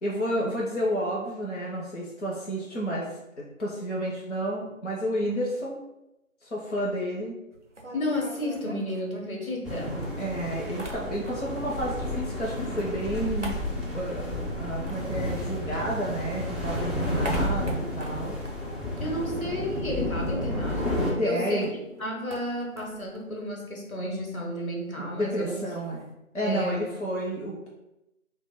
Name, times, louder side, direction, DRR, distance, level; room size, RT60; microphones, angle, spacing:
voice 1, 0.0-3.1 3.4-5.8 6.4-7.4 10.2-13.6 13.9-14.3 14.6-18.4 21.2-21.7 24.9-26.0 26.3-27.7, right 1 dB, 60° left, -4 dB, 0.6 m, -30 dB
sound 1, 7.5-9.7 10.0-11.7 11.9-16.1 16.4-19.7 20.0-20.1 20.3-26.1, right 1 dB, 60° right, 0.5 m, -44 dB
voice 2, 7.9-10.0 19.0-21.6 22.0-25.6 26.4-26.9, left 1 dB, 80° left, -2 dB, 0.9 m, -32 dB
sound 2, 9.7-21.1, left 1 dB, ahead, 0.4 m, -31 dB
2.1 x 2.0 x 3.5 m, 0.92 s
figure-of-eight pair, 180°, 42 cm